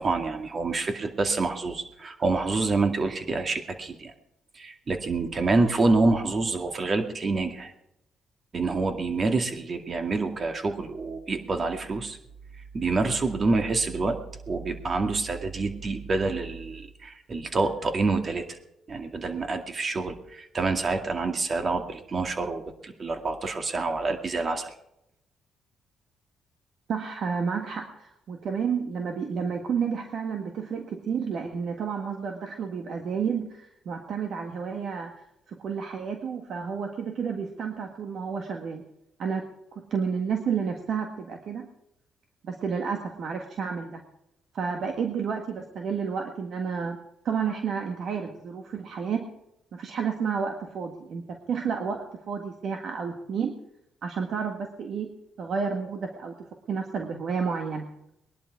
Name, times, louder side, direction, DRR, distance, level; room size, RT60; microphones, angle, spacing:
voice 1, 0.0-4.1 4.6-7.7 8.5-12.2 12.7-14.2 14.5-18.6 18.9-24.7, right 3 dB, 40° right, 5 dB, 2.2 m, -27 dB
voice 2, 26.9-35.1 35.5-38.8 39.2-39.4 39.7-41.7 42.4-44.0 44.5-47.0 47.2-49.2 49.7-51.2 51.5-53.5 54.0-55.1 55.4-56.3 56.7-57.9, right 6 dB, 65° right, 3 dB, 1.7 m, -30 dB
20.5 x 11.0 x 4.8 m, 0.81 s
cardioid pair, 90°, 0 cm